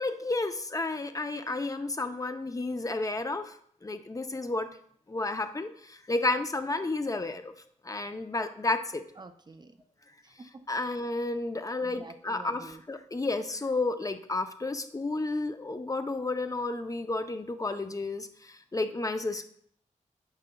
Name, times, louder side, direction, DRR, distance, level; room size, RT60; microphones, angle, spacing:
voice 1, 0.0-3.5 3.8-4.7 5.1-7.5 7.8-9.0 10.7-19.4, left 2 dB, 25° left, 8 dB, 0.6 m, -31 dB
voice 2, 9.2-9.8 10.2-11.0 11.8-12.8, right 3 dB, 35° right, 9 dB, 0.5 m, -49 dB
8.9 x 5.4 x 2.3 m, 0.63 s
cardioid pair, 75°, 13 cm